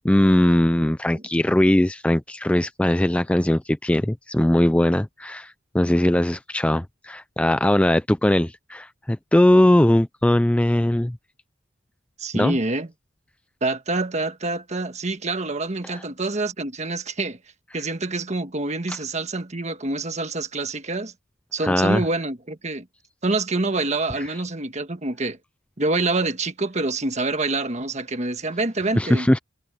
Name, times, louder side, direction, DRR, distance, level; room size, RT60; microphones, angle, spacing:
voice 1, 0.0-11.2 12.3-12.6 15.9-16.0 18.9-19.0 21.6-22.0 28.9-29.4, left 1 dB, 5° left, 0.4 m, -20 dB
voice 2, 12.2-12.9 13.6-17.4 17.7-21.1 21.5-22.9 23.2-25.4 25.8-29.3, right 2 dB, 35° right, 1.5 m, -26 dB
head